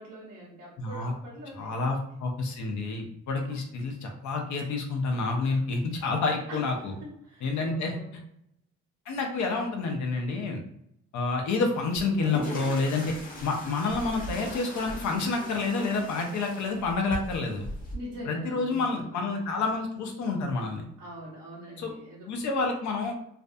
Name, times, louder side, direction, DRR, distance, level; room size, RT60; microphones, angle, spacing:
voice 1, 0.0-1.8 3.3-3.4 6.5-6.6 7.0-8.1 17.9-19.1 21.0-22.3, right 1 dB, 80° right, -5 dB, 0.8 m, -43 dB
voice 2, 0.8-1.1 1.6-6.9 7.4-8.2 9.1-10.6 11.1-13.1 13.4-17.7 18.2-20.9 21.8-21.9 22.3-23.1, left 3 dB, 70° left, 3 dB, 0.6 m, -29 dB
sound 1, 11.9-17.9, left 1 dB, 30° left, 0.8 m, -40 dB
2.5 x 2.2 x 2.5 m, 0.75 s
cardioid pair, 90°, 30 cm